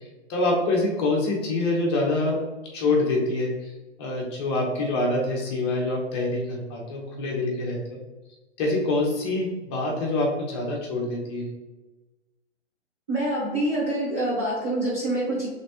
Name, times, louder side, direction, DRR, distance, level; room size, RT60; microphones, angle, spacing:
voice 1, 0.3-2.4 2.7-3.7 4.0-8.0 8.6-11.5, left 2 dB, 25° left, -1 dB, 0.7 m, -25 dB
voice 2, 13.1-15.5, right 1 dB, 15° right, -10 dB, 0.3 m, -26 dB
3.2 x 3.2 x 2.8 m, 1.1 s
figure-of-eight pair, 120°, 34 cm